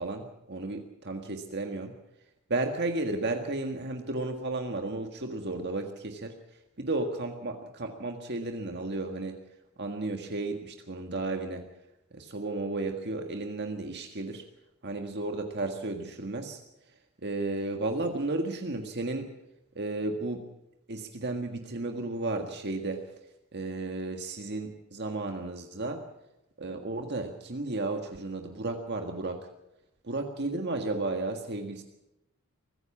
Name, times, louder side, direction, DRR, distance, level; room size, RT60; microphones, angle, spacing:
voice 1, 0.0-1.9 2.5-6.3 6.8-9.4 9.8-11.7 12.1-14.4 14.8-16.6 17.2-19.3 19.8-20.5 20.9-23.0 23.5-26.0 26.6-29.5 30.0-31.8, right 2 dB, 50° right, 4 dB, 1.7 m, -33 dB
24.0 x 15.5 x 7.2 m, 0.88 s
head